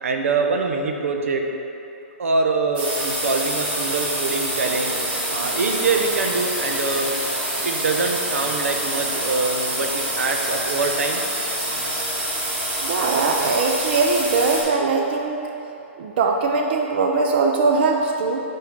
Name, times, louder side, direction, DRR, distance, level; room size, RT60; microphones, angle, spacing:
voice 1, 0.0-1.4 2.2-5.0 5.3-7.1 7.6-11.3, right 4 dB, 85° right, 3 dB, 0.8 m, -24 dB
sound 1, 2.7-14.6, right 1 dB, 20° right, 1.6 m, -26 dB
voice 2, 12.8-15.4 16.0-18.4, right 4 dB, 50° right, 2 dB, 0.6 m, -21 dB
6.7 x 4.6 x 5.1 m, 2.8 s
hypercardioid pair, 160°, 7 cm